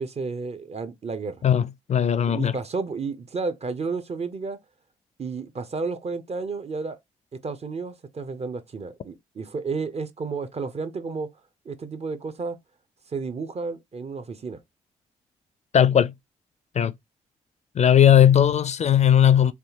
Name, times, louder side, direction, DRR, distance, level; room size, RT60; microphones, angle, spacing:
voice 1, 0.0-1.4 2.2-4.6 5.2-7.0 7.4-11.3 11.6-12.6 13.1-14.6, right 4 dB, 40° right, 0.7 m, -32 dB
voice 2, 1.4-2.5 15.7-16.1 16.8-16.9 17.8-19.5, left 9 dB, 45° left, 0.4 m, -18 dB
3.4 x 2.4 x 2.8 m
hypercardioid pair, 45°, 17 cm